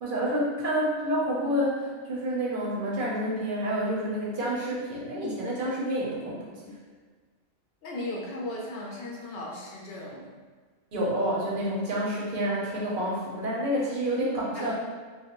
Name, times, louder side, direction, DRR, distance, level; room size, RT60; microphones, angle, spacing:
voice 1, 0.0-6.8 10.9-14.7, equal, 50° right, -5 dB, 0.7 m, -29 dB
voice 2, 7.8-10.3 14.6-14.7, left 1 dB, 60° left, -3 dB, 0.7 m, -36 dB
2.3 x 2.1 x 2.8 m, 1.5 s
omnidirectional pair, 1.3 m